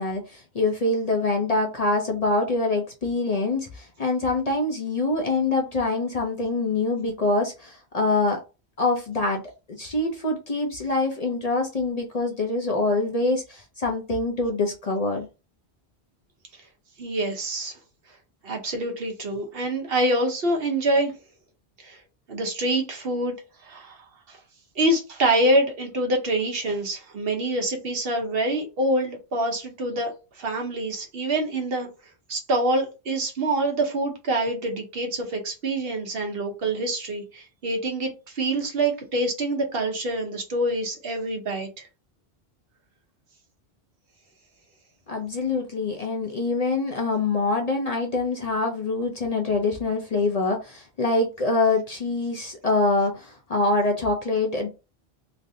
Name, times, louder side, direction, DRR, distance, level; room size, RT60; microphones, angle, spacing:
voice 1, 0.0-8.4 8.8-9.4 9.8-15.3 45.1-54.7, left 3 dB, 45° left, 0.6 m, -25 dB
voice 2, 17.0-17.7 18.4-21.1 21.8-22.0 22.3-23.4 23.6-24.4 24.8-31.9 32.3-41.9, right 1 dB, 65° right, 1.1 m, -26 dB
3.2 x 2.5 x 2.6 m
omnidirectional pair, 1.1 m